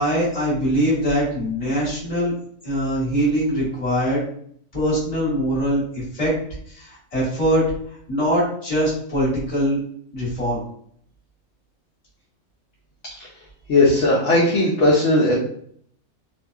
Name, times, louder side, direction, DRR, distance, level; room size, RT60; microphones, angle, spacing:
voice 1, 0.0-2.3 2.6-4.2 4.7-6.3 6.7-7.6 8.1-9.8 10.1-10.6, equal, 30° left, -8 dB, 1.4 m, -22 dB
voice 2, 13.7-15.4, left 2 dB, 65° left, -5 dB, 0.9 m, -17 dB
2.8 x 2.1 x 2.3 m, 0.63 s
omnidirectional pair, 1.4 m